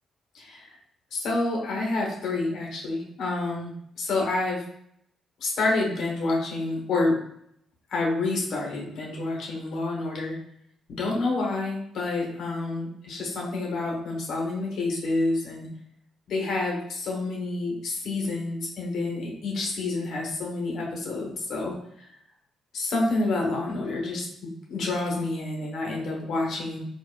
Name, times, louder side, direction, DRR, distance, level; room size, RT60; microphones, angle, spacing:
voice 1, 0.3-0.7 1.1-3.7 4.0-4.6 5.4-7.2 7.9-10.4 11.0-15.7 16.3-22.1 22.7-24.3 24.7-26.8, left 2 dB, 70° left, -2 dB, 1.1 m, -28 dB
4.3 x 2.4 x 2.3 m, 0.70 s
cardioid pair, 90°, 0 cm